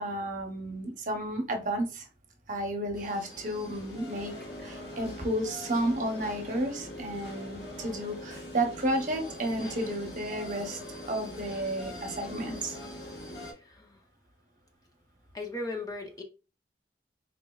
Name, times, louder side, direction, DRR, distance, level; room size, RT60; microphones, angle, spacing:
voice 1, 0.0-2.1 2.5-4.3 4.6-10.8 11.1-12.8, right 1 dB, 45° right, 0.8 m, -32 dB
sound 1, 2.9-13.5, left 1 dB, 70° left, 1.4 m, -42 dB
voice 2, 13.6-14.0 15.3-16.2, left 2 dB, 20° left, 0.5 m, -37 dB
4.0 x 3.3 x 2.3 m
head